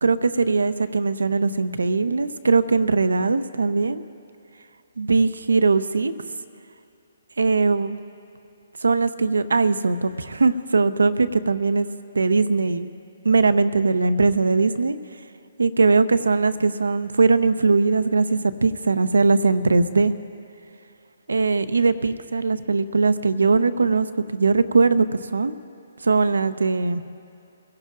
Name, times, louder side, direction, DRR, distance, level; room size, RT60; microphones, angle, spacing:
voice 1, 0.0-4.0 5.0-6.1 7.4-8.0 8.8-11.9 12.1-12.9 13.2-15.0 15.6-20.1 21.3-25.1 25.3-25.5 26.0-27.0, right 4 dB, 85° right, 12 dB, 0.7 m, -20 dB
25.0 x 16.5 x 2.5 m, 2.7 s
hypercardioid pair, 145°, 0 cm